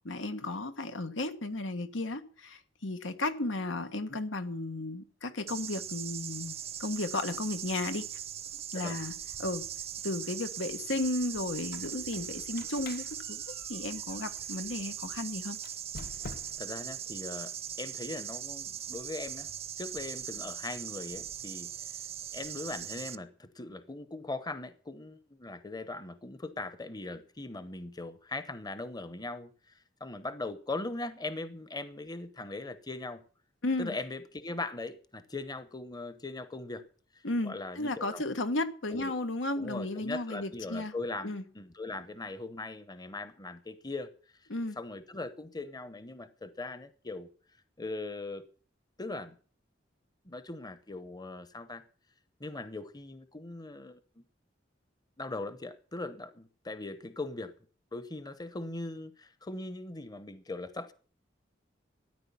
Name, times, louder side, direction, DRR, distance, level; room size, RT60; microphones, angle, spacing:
voice 1, 0.0-8.0 8.7-9.7 10.0-15.6 33.6-34.0 37.2-40.9 41.2-41.4 44.5-44.8, left 2 dB, 90° left, 1.5 m, -34 dB
sound 1, 5.5-23.2, right 10 dB, 35° right, 0.6 m, -40 dB
Squeak, 11.6-14.7 15.5-16.8, left 3 dB, 55° left, 1.0 m, -48 dB
voice 2, 16.6-17.5 17.8-19.5 19.8-21.7 22.3-29.5 30.0-33.2 33.8-36.8 37.4-38.2 38.9-39.1 39.6-44.1 44.8-47.3 47.8-48.4 49.0-49.4 50.2-51.8 52.4-54.2 55.2-57.5 57.9-60.9, left 2 dB, 20° left, 0.9 m, -40 dB
13.5 x 10.0 x 7.0 m
head